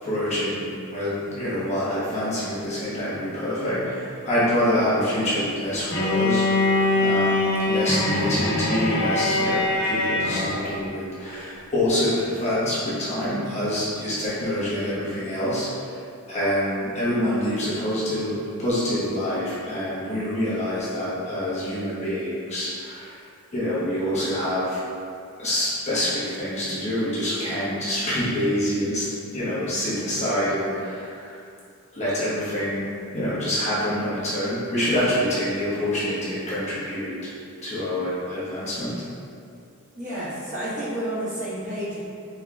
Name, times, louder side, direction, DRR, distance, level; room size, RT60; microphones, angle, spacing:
voice 1, 0.0-15.7 16.3-23.2 23.5-24.8 25.4-29.1 29.3-31.3 31.9-37.3 37.6-38.9, left 1 dB, 30° left, -10 dB, 1.1 m, -26 dB
Bowed string instrument, 5.9-10.8, left 2 dB, 80° left, 1.1 m, -23 dB
voice 2, 39.9-42.0, right 1 dB, 35° right, -11 dB, 1.4 m, -30 dB
4.4 x 4.3 x 2.3 m, 2.4 s
head